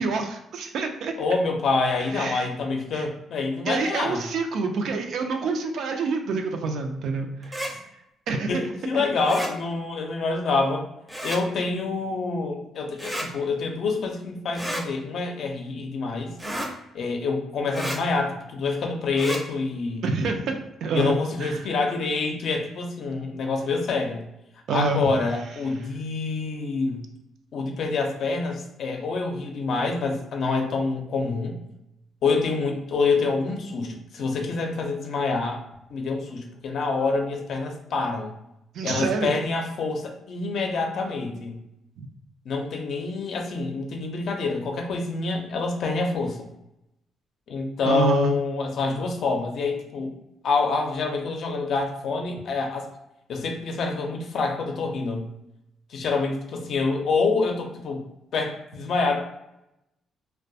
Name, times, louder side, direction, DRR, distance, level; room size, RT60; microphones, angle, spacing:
voice 1, 0.0-1.1 2.1-2.5 2.9-3.1 3.7-7.7 8.3-8.6 8.9-9.0 20.0-20.6 20.8-21.7 24.7-25.1 38.7-39.3 42.0-42.1 47.8-48.4, right 4 dB, 70° right, 4 dB, 0.4 m, -27 dB
voice 2, 1.2-4.2 8.5-10.9 11.2-16.3 16.9-20.0 20.9-24.2 24.7-27.0 27.5-31.5 32.2-35.6 35.9-38.3 38.8-41.6 42.4-46.4 47.5-50.1 50.4-52.9 53.3-55.3 55.9-58.0 58.3-59.2, left 3 dB, 65° left, 2 dB, 0.5 m, -26 dB
sound 1, 7.4-7.7 9.2-9.5 11.1-11.4 13.0-13.3 14.5-14.8 16.4-16.7 17.7-18.0 19.1-19.4, right 1 dB, 10° right, 0.5 m, -31 dB
2.2 x 2.1 x 2.6 m, 0.85 s
cardioid pair, 90°, 0 cm